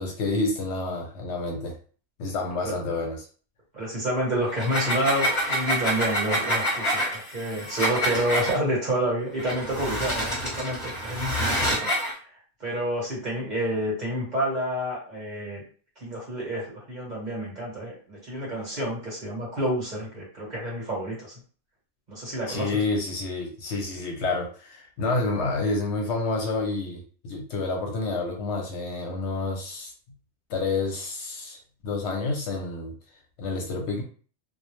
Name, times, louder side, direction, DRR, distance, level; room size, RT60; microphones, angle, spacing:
voice 1, 0.0-1.8 2.2-3.3 22.5-29.9 30.5-32.9 33.4-34.0, left 3 dB, 65° left, 1 dB, 0.8 m, -29 dB
voice 2, 3.7-11.8 12.6-15.6 16.0-21.3 22.1-22.8, right 1 dB, 40° right, -4 dB, 1.0 m, -29 dB
sound 1, 4.5-8.6 9.4-12.1, equal, 25° left, 0.9 m, -27 dB
2.3 x 2.0 x 3.0 m, 0.40 s
omnidirectional pair, 1.3 m